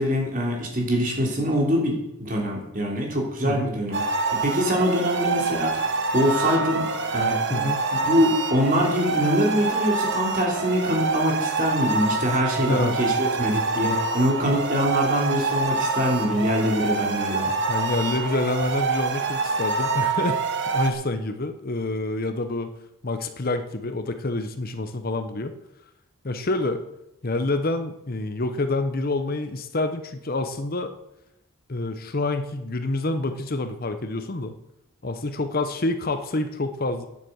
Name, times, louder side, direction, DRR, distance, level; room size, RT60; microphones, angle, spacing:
voice 1, 0.0-4.0 4.3-6.9 7.1-7.7 8.0-17.5, equal, 40° right, -1 dB, 3.2 m, -24 dB
voice 2, 3.4-3.7 7.5-7.8 12.6-13.0 17.5-22.7 23.0-25.5 26.2-26.8 27.2-30.9 31.7-34.5 35.0-37.1, left 2 dB, 45° left, 9 dB, 0.9 m, -27 dB
sound 1, 3.9-20.9, right 4 dB, 55° right, 1.3 m, -26 dB
9.9 x 8.4 x 7.8 m, 0.86 s
head